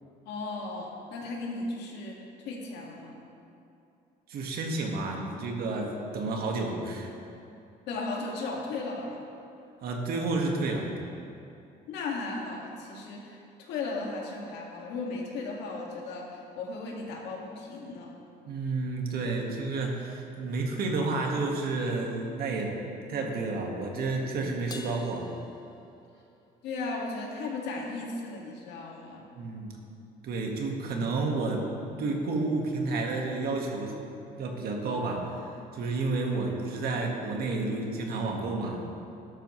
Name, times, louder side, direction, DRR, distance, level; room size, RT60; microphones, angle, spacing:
voice 1, 0.2-3.2 7.9-9.2 11.9-18.1 26.6-29.2, left 3 dB, 85° left, -2 dB, 2.1 m, -36 dB
voice 2, 4.3-7.1 9.8-10.9 18.5-22.8 23.1-25.2 29.3-29.7 30.2-31.7 32.0-33.9 34.3-35.3 35.7-38.8, right 3 dB, 65° right, 1 dB, 1.8 m, -30 dB
Crash cymbal, 24.7-26.4, left 3 dB, 25° left, 0.7 m, -46 dB
13.5 x 11.5 x 3.3 m, 2.7 s
cardioid pair, 110°, 17 cm